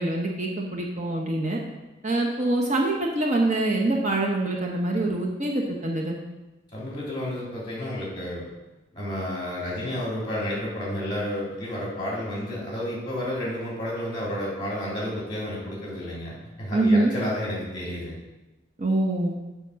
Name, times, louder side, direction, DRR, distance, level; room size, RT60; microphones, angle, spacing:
voice 1, 0.0-1.6 2.0-6.2 16.7-17.1 18.8-19.4, right 2 dB, 35° right, -1 dB, 0.9 m, -24 dB
voice 2, 6.7-8.5 8.9-18.2, left 1 dB, 25° left, -5 dB, 3.2 m, -31 dB
6.9 x 5.2 x 6.2 m, 1.1 s
head